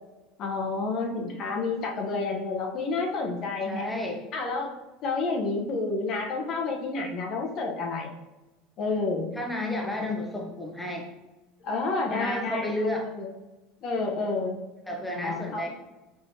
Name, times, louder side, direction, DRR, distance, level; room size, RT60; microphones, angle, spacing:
voice 1, 0.4-3.9 4.3-4.7 5.0-8.1 8.8-9.3 11.6-12.7 13.0-13.3 13.8-14.6 15.1-15.7, left 3 dB, 50° left, 1 dB, 0.8 m, -29 dB
voice 2, 3.7-4.2 9.3-11.1 12.1-13.1 14.9-15.7, left 1 dB, 10° left, 0 dB, 0.6 m, -31 dB
4.6 x 3.0 x 2.7 m, 1.1 s
supercardioid pair, 110°, 0 cm